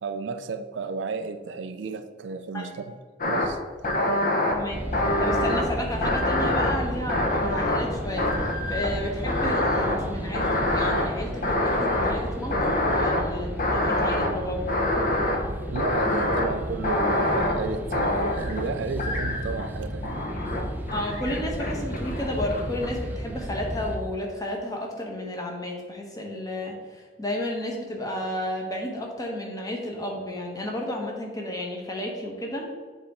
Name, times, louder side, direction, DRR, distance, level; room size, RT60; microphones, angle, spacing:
voice 1, 0.0-3.0 3.3-3.6 15.7-20.1, right 4 dB, 65° right, 9 dB, 0.4 m, -32 dB
sound 1, 3.2-3.5 3.8-4.5 4.9-5.6 6.0-7.9 8.2-9.0 9.3-10.0 10.3-11.0 11.4-12.1 12.5-13.2 13.6-14.3 14.7-15.4 15.8-16.5 16.8-17.5 17.9-18.6 19.0-19.7 20.0-20.6 20.9-22.9, left 1 dB, 45° left, 0.9 m, -25 dB
voice 2, 4.5-4.8 5.2-14.6 20.9-32.7, left 1 dB, 20° left, 0 dB, 1.0 m, -32 dB
sound 2, 4.7-24.0, right 1 dB, 10° right, 0.5 m, -34 dB
sound 3, 5.4-15.3, left 2 dB, 75° left, 1.0 m, -46 dB
7.3 x 3.5 x 4.3 m, 1.5 s
head